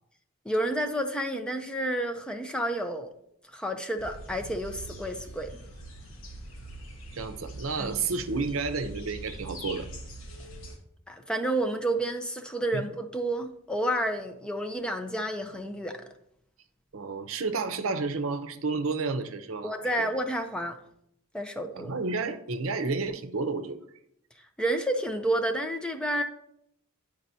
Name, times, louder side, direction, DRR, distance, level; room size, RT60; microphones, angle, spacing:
voice 1, 0.4-3.1 3.5-5.6 7.8-8.0 11.1-16.0 19.6-20.8 21.3-21.9 24.6-26.2, right 1 dB, 5° left, 5 dB, 0.5 m, -30 dB
sound 1, 4.0-10.8, right 1 dB, 65° left, 1.5 m, -43 dB
voice 2, 7.1-9.9 12.7-12.8 16.9-20.1 21.7-23.8, right 4 dB, 70° right, 10 dB, 0.6 m, -31 dB
10.0 x 5.1 x 2.7 m, 0.74 s
head